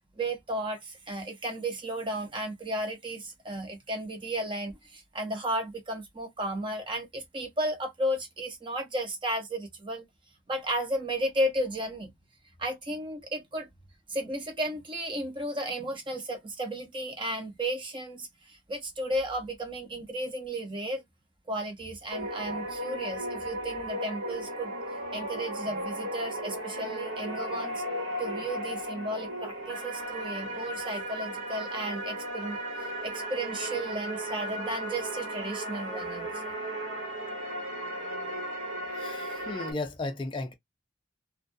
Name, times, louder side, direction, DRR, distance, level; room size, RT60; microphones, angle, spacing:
voice 1, 0.2-10.0 10.5-12.1 12.6-13.7 14.1-21.0 21.5-24.7 25.1-27.8 28.2-36.4, right 1 dB, 25° right, 0.6 m, -34 dB
sound 1, 22.1-39.7, right 1 dB, 75° right, 1.1 m, -35 dB
voice 2, 38.9-40.5, left 2 dB, 25° left, 0.3 m, -35 dB
2.3 x 2.2 x 2.5 m
head